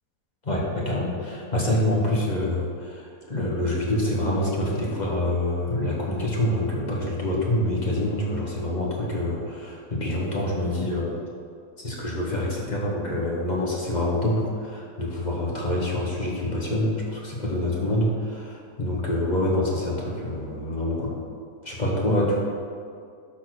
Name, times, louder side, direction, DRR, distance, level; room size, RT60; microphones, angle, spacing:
voice 1, 0.4-3.0 3.3-11.1 11.8-21.1 21.6-22.4, left 1 dB, 25° left, -4 dB, 1.6 m, -26 dB
12.0 x 4.2 x 6.4 m, 2.3 s
omnidirectional pair, 1.8 m